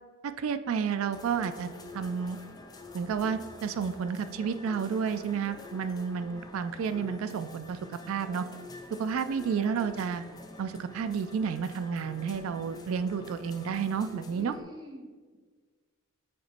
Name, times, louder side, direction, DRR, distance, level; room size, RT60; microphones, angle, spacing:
voice 1, 0.2-1.7 1.9-2.4 2.9-8.5 9.0-10.2 10.6-14.6, right 6 dB, 75° right, 10 dB, 0.3 m, -31 dB
sound 1, 1.1-14.6, left 2 dB, 20° left, 0.4 m, -47 dB
voice 2, 14.4-15.4, equal, 20° right, 0 dB, 0.8 m, -46 dB
8.4 x 2.9 x 4.2 m, 1.5 s
head